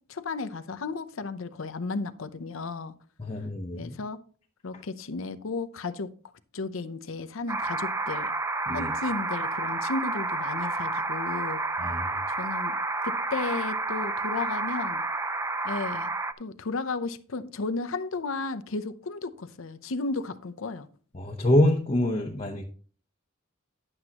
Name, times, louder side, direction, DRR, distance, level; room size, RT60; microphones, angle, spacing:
voice 1, 0.1-2.9 3.7-4.2 4.6-6.1 6.5-8.3 8.7-11.6 12.3-12.8 13.0-15.0 15.6-16.1 16.4-20.9, left 3 dB, 65° left, 11 dB, 0.7 m, -34 dB
voice 2, 3.2-3.9 8.7-8.9 11.8-12.0 21.1-22.6, left 1 dB, 30° left, 0 dB, 0.9 m, -25 dB
sound 1, 7.5-16.3, right 2 dB, 15° right, 0.5 m, -30 dB
11.0 x 8.0 x 2.9 m, 0.42 s
head